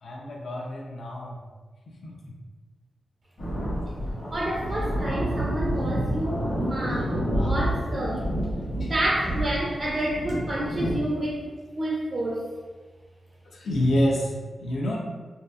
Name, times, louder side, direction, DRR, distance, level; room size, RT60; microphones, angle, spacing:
voice 1, 0.0-1.4 1.9-2.3 7.3-7.8 8.8-8.9 13.4-15.0, equal, 70° left, -1 dB, 0.4 m, -28 dB
sound 1, 3.4-11.0, equal, 50° left, 0.9 m, -29 dB
voice 2, 4.3-7.2 7.5-8.2 8.8-11.4 11.8-12.4, right 1 dB, 35° right, -3 dB, 0.4 m, -29 dB
2.7 x 2.3 x 2.3 m, 1.3 s
wide cardioid pair, 130°, 0 cm